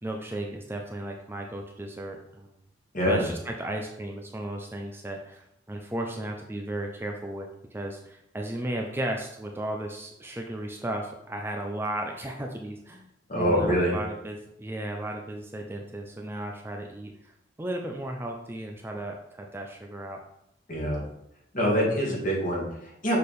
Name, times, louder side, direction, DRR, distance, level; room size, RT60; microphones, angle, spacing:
voice 1, 0.0-2.5 3.1-13.1 13.3-17.3 17.6-20.2, right 1 dB, 15° right, 2 dB, 0.5 m, -35 dB
voice 2, 13.3-14.0 20.7-21.0 21.5-23.2, equal, 45° left, -3 dB, 1.9 m, -25 dB
6.6 x 3.4 x 4.1 m, 0.80 s
head